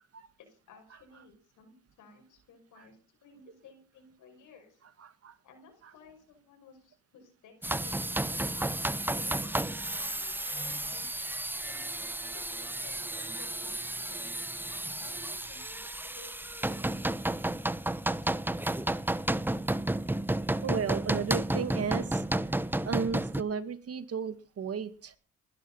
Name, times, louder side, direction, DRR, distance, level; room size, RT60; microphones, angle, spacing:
voice 1, 0.4-4.8 5.4-9.5 10.0-11.4 11.7-14.3 15.0-17.2, left 5 dB, 80° left, 5 dB, 5.9 m, -57 dB
voice 2, 5.0-5.3 8.6-8.7 13.6-13.7 20.6-22.2 22.8-25.1, right 6 dB, 50° right, 12 dB, 2.1 m, -34 dB
sound 1, 7.6-23.4, right 1 dB, 5° right, 0.9 m, -32 dB
20.0 x 11.5 x 5.5 m, 0.38 s
cardioid pair, 90°, 30 cm